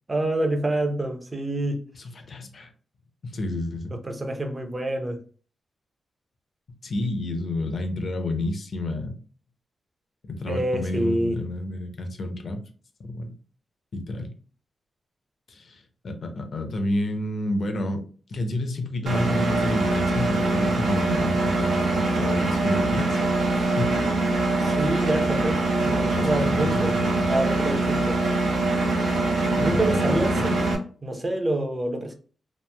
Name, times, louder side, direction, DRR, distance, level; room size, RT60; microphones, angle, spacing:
voice 1, 0.1-1.8 3.9-5.2 10.4-11.4 24.6-26.9 27.3-28.2 29.6-30.8 31.0-32.2, right 1 dB, 25° right, 0.5 m, -27 dB
voice 2, 1.9-2.7 3.2-3.9 6.8-9.2 10.3-12.6 13.0-13.3 13.9-14.3 15.5-18.0 18.3-23.2 23.5-24.0 26.1-27.3 29.5-30.6, left 1 dB, 55° left, 0.6 m, -30 dB
Engine, 19.1-30.8, right 2 dB, 85° right, 0.6 m, -23 dB
3.0 x 2.4 x 2.2 m
wide cardioid pair, 125°, 0 cm